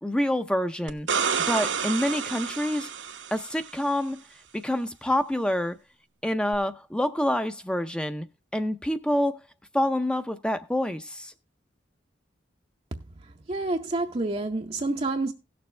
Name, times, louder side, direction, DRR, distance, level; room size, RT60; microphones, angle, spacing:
voice 1, 0.0-1.1 1.5-2.9 3.3-4.2 4.5-5.8 6.2-8.3 8.5-9.4 9.7-11.3, left 1 dB, 5° left, 0.6 m, -27 dB
sound 1, 0.9-3.7 6.5-6.6, right 6 dB, 75° right, 1.0 m, -29 dB
voice 2, 13.2-15.3, right 2 dB, 35° right, 0.6 m, -29 dB
16.5 x 6.9 x 3.2 m
head